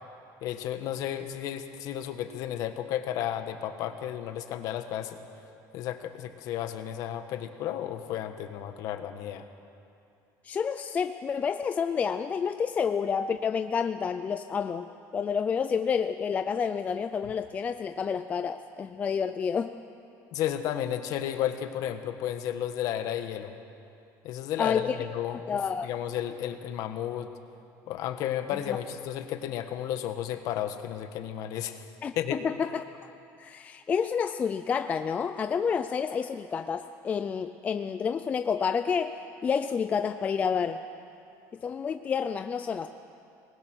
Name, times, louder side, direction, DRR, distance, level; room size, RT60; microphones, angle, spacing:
voice 1, 0.4-5.2 5.7-9.4 20.3-23.5 24.2-27.3 27.9-31.8 32.2-32.4, left 11 dB, 50° left, 8 dB, 1.3 m, -33 dB
voice 2, 10.4-14.9 15.1-19.7 24.6-25.0 25.5-25.9 28.7-28.8 32.0-33.1 33.4-40.8 41.6-42.9, left 6 dB, 20° left, 9 dB, 0.4 m, -29 dB
26.0 x 20.0 x 6.2 m, 2.6 s
cardioid pair, 180°, 8 cm